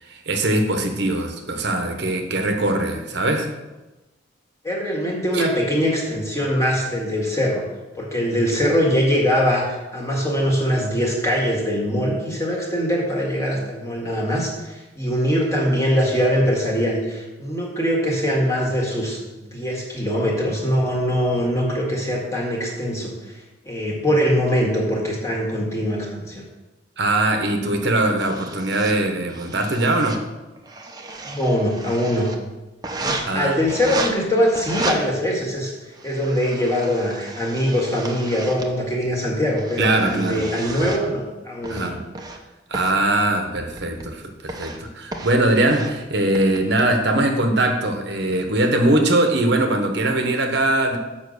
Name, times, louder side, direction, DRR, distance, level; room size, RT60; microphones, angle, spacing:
voice 1, 0.0-3.5 5.3-5.5 27.0-30.2 33.2-33.7 39.8-40.5 41.7-42.0 42.7-51.0, right 1 dB, 60° right, 4 dB, 1.0 m, -21 dB
voice 2, 4.6-7.6 7.9-23.1 23.7-26.4 31.3-32.3 33.1-35.7 36.0-41.9, equal, 15° left, -2 dB, 1.9 m, -22 dB
sound 1, 28.2-28.9 29.3-30.2 30.6-32.4 32.8-33.2 33.7-34.1 34.6-35.0 35.7-38.7 39.3-41.1 41.6-42.4 42.7-43.0 43.6-44.1 44.5-44.8 45.1-45.4 45.7-45.9 46.4-46.8, right 2 dB, 20° right, 0.8 m, -33 dB
7.3 x 5.4 x 6.5 m, 1.1 s
head